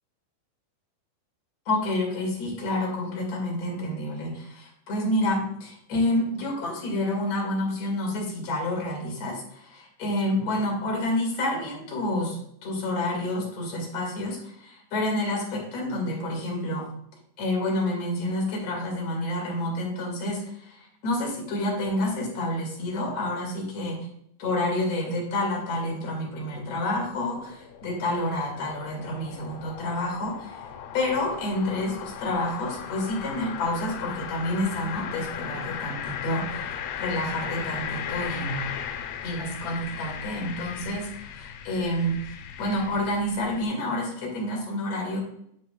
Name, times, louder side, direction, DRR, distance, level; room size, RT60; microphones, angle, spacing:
voice 1, 1.7-16.9 17.4-24.0 24.4-30.6 30.9-38.6 39.2-42.2 42.6-45.2, left 1 dB, 50° left, -1 dB, 2.3 m, -29 dB
sound 1, 26.0-43.6, left 8 dB, 90° left, 3.5 m, -37 dB
10.0 x 6.7 x 2.3 m, 0.72 s
omnidirectional pair, 5.8 m